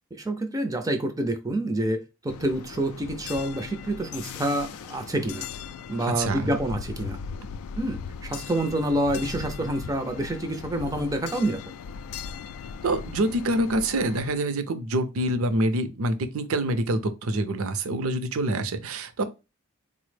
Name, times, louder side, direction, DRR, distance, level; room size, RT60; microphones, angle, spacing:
voice 1, 0.1-5.5 5.9-7.2 7.8-11.6, right 1 dB, 15° right, 0.4 m, -28 dB
sound 1, 2.3-14.4, left 6 dB, 80° left, 0.3 m, -38 dB
voice 2, 6.1-6.5 12.8-19.2, right 1 dB, 70° right, 0.5 m, -26 dB
3.9 x 2.0 x 3.2 m
head